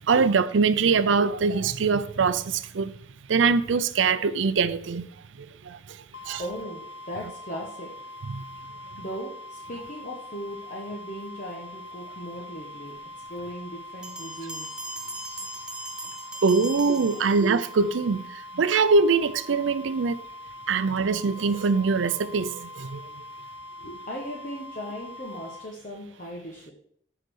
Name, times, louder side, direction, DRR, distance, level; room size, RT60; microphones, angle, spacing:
voice 1, 0.1-2.9 3.3-5.1 5.4-5.8 6.3-6.4 8.3-8.4 16.4-18.2 18.6-20.2 20.7-23.0, right 4 dB, 85° right, 0.5 m, -23 dB
sound 1, 6.1-25.7, left 1 dB, 80° left, 1.0 m, -43 dB
voice 2, 6.4-7.9 9.0-13.0 13.3-14.8 17.2-17.3 23.8-26.7, equal, 45° left, 1.2 m, -38 dB
Bell, 14.0-17.8, right 1 dB, 5° right, 0.6 m, -39 dB
6.7 x 5.0 x 6.2 m
head